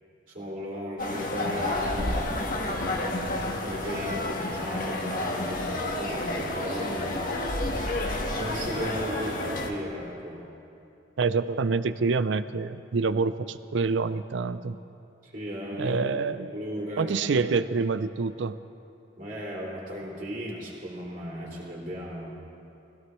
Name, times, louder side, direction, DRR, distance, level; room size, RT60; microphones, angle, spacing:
voice 1, 0.3-7.2 8.3-10.4 15.2-16.0 16.4-17.3 19.2-22.3, equal, 45° right, -5 dB, 3.2 m, -36 dB
sound 1, 1.0-9.7, left 1 dB, 50° left, 1.3 m, -30 dB
voice 2, 11.2-14.8 15.8-16.5 17.0-18.6, right 4 dB, 80° right, 13 dB, 0.5 m, -27 dB
21.0 x 16.0 x 3.1 m, 2.8 s
head